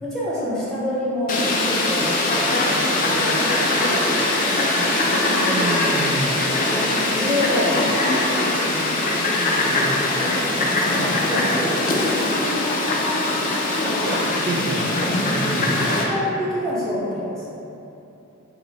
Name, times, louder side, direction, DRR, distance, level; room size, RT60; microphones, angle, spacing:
voice 1, 0.0-4.1 6.9-8.0 8.6-9.0 10.9-11.0 11.3-11.9 16.0-17.5, left 1 dB, ahead, -9 dB, 0.6 m, -27 dB
Fowl, 1.3-16.0, left 2 dB, 40° left, 0.3 m, -21 dB
voice 2, 5.2-6.4 7.7-8.2 9.4-10.0 10.9-11.1 11.5-12.9 13.5-15.0 15.3-16.2, right 2 dB, 50° right, -2 dB, 0.3 m, -31 dB
2.7 x 2.0 x 3.9 m, 2.9 s
head